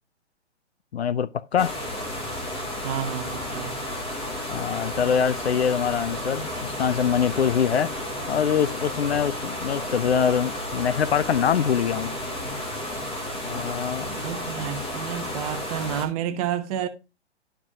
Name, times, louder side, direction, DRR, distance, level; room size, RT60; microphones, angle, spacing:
voice 1, 0.9-1.7 4.5-7.9 8.3-12.1 13.4-14.1, left 8 dB, 65° left, 0.6 m, -24 dB
sound 1, 1.6-16.1, left 1 dB, 15° left, 2.0 m, -32 dB
voice 2, 2.8-3.8 14.1-16.9, right 9 dB, 30° right, 1.1 m, -30 dB
11.5 x 4.7 x 2.7 m
figure-of-eight pair, 125°, 35 cm